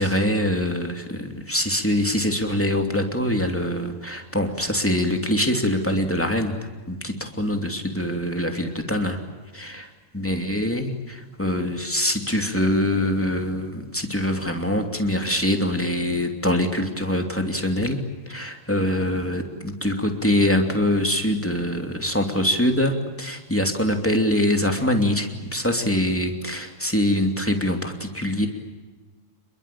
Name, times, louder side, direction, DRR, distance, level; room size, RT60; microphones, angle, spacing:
voice 1, 0.0-6.5 6.9-9.2 9.5-9.9 10.1-18.0 18.2-28.5, left 1 dB, 5° left, 4 dB, 1.7 m, -24 dB
29.0 x 22.5 x 8.7 m, 1.2 s
omnidirectional pair, 4.7 m